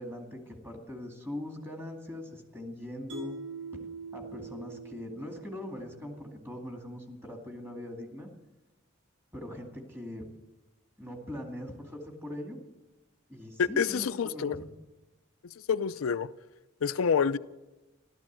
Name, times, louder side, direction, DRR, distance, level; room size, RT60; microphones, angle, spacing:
voice 1, 0.0-3.3 4.1-8.3 9.3-10.2 11.0-12.6 13.3-14.7, left 1 dB, 10° right, 2.3 m, -41 dB
Mallet percussion, 3.1-6.4, right 3 dB, 70° right, 1.8 m, -43 dB
voice 2, 13.6-14.6 15.7-16.3 16.8-17.4, left 6 dB, 90° left, 0.5 m, -27 dB
14.0 x 12.5 x 7.5 m
head